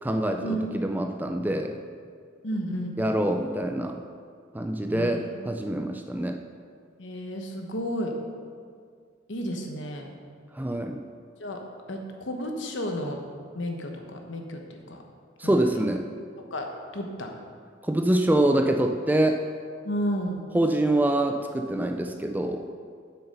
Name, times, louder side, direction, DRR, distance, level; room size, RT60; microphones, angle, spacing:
voice 1, 0.0-1.8 3.0-4.0 4.5-6.4 10.5-11.0 15.4-16.1 17.8-19.4 20.5-22.7, right 1 dB, 10° right, 5 dB, 0.4 m, -25 dB
voice 2, 2.4-2.9 4.9-5.5 5.8-6.0 7.0-8.1 9.3-10.1 11.4-11.6 11.9-13.2 13.5-15.0 15.4-15.6 16.4-17.3 19.8-20.5, equal, 70° left, 3 dB, 1.1 m, -32 dB
7.8 x 6.9 x 5.5 m, 2.1 s
head